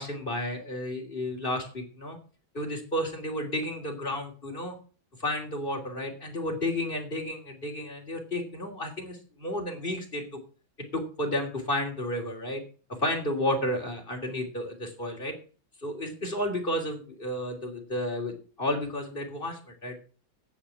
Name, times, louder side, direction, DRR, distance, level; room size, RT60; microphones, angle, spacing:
voice 1, 0.0-2.2 2.5-4.8 5.2-10.2 10.9-12.6 13.0-15.3 15.8-20.0, left 1 dB, 25° left, 2 dB, 3.3 m, -32 dB
11.5 x 9.0 x 5.7 m, 0.39 s
omnidirectional pair, 2.1 m